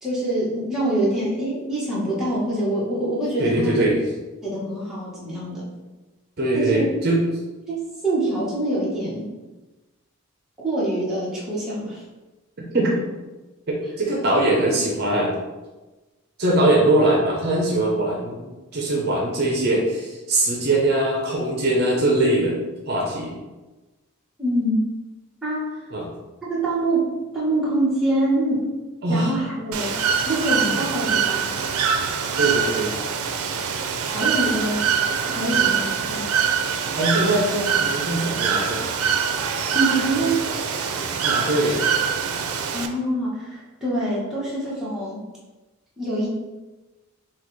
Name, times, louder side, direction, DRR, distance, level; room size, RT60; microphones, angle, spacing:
voice 1, 0.0-3.9 4.4-5.7 6.5-6.9 7.7-9.3 10.6-12.0 24.4-24.8 25.4-25.8 26.4-28.7 29.1-30.0 30.3-31.5 34.0-36.4 39.7-40.5 42.7-45.2 46.0-46.3, right 1 dB, ahead, -9 dB, 1.1 m, -25 dB
voice 2, 3.4-4.0 6.4-7.2 12.7-13.0 13.7-15.3 16.4-22.6 22.9-23.3 25.9-26.1 29.0-29.3 30.8-30.9 32.4-32.9 37.0-38.8 41.2-41.8, right 1 dB, 45° right, -2 dB, 0.6 m, -21 dB
Bird / Water, 29.7-42.9, right 6 dB, 85° right, 0.4 m, -24 dB
5.6 x 2.3 x 3.2 m, 1.2 s
head